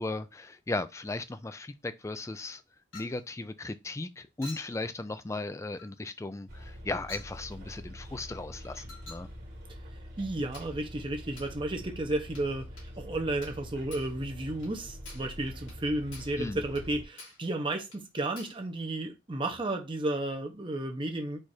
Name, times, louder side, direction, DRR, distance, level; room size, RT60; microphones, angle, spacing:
voice 1, 0.0-2.6 2.9-9.3 16.4-16.6, left 2 dB, 15° left, 0.3 m, -36 dB
Chink clink, 2.9-3.2 4.4-4.8 5.8-6.0 7.1-7.4 8.9-9.3 10.5-10.8 11.4-11.6 12.4-12.5 12.8-12.9 13.4-13.6 13.9-14.2 14.6-14.8 15.1-15.3 15.7-15.8 16.1-16.4 16.8-16.9 17.2-17.5 17.9-18.0 18.4-18.6, left 2 dB, 85° left, 2.1 m, -49 dB
Bus, 6.5-17.0, equal, 55° right, 1.5 m, -45 dB
voice 2, 10.2-12.7 13.0-21.4, right 2 dB, 25° right, 0.7 m, -33 dB
4.3 x 2.5 x 4.8 m
head